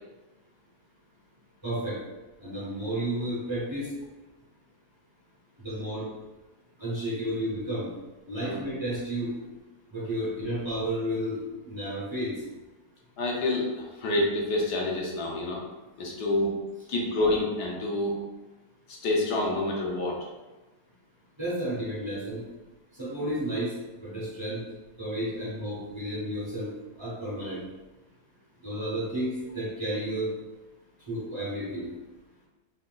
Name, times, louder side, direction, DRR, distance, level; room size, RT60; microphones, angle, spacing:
voice 1, 1.6-2.0 2.4-3.9 5.6-6.1 6.8-7.9 8.3-9.3 9.9-11.4 11.7-12.3 21.4-22.4 23.0-23.7 24.0-24.6 25.0-26.7 27.0-27.6 28.6-30.3 31.1-31.9, right 1 dB, 45° right, -7 dB, 0.3 m, -32 dB
voice 2, 13.2-15.6 16.0-16.6 16.9-18.2 18.9-20.2, left 2 dB, 85° left, -2 dB, 1.4 m, -28 dB
3.8 x 2.3 x 3.7 m, 1.1 s
omnidirectional pair, 1.7 m